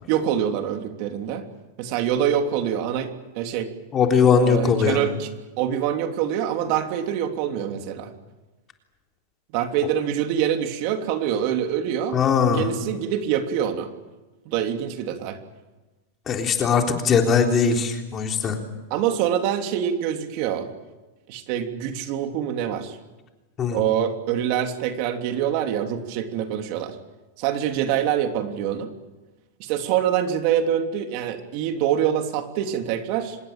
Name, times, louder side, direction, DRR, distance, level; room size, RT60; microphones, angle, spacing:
voice 1, 0.1-1.5 1.8-3.7 4.4-5.3 5.6-8.1 9.5-12.2 12.6-13.9 14.5-15.4 18.9-20.7 21.3-23.0 23.7-26.9 27.4-28.9 29.6-33.4, right 9 dB, 50° right, 6 dB, 3.1 m, -25 dB
voice 2, 3.9-5.1 12.1-12.7 16.3-18.6 23.6-23.9, left 6 dB, 25° left, 3 dB, 3.7 m, -20 dB
26.0 x 21.0 x 9.0 m, 1.1 s
supercardioid pair, 145°, 0 cm